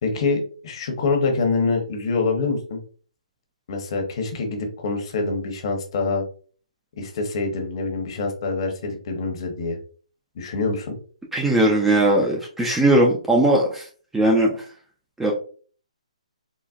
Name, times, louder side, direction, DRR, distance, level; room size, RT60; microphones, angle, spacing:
voice 1, 0.0-2.8 3.7-6.2 7.0-9.8 10.4-10.9, left 3 dB, 45° left, 3 dB, 0.9 m, -25 dB
voice 2, 11.3-13.8 14.1-14.5 15.2-15.3, right 1 dB, 5° right, -1 dB, 0.3 m, -18 dB
3.9 x 2.1 x 2.4 m, 0.42 s
hypercardioid pair, 150°, 4 cm